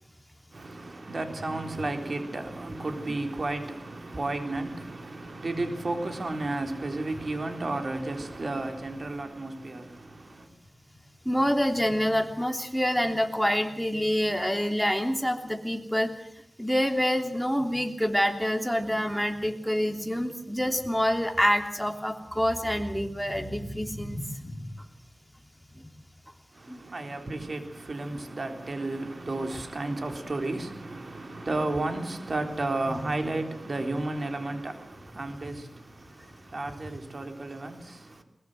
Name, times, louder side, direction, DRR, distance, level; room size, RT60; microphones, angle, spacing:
voice 1, 0.5-10.5 26.5-38.2, right 2 dB, 60° right, 3.7 m, -33 dB
voice 2, 11.2-16.1 16.6-24.6 26.7-26.8 32.5-33.0, equal, ahead, 3.2 m, -27 dB
21.5 x 20.5 x 7.8 m
wide cardioid pair, 60°, 0 cm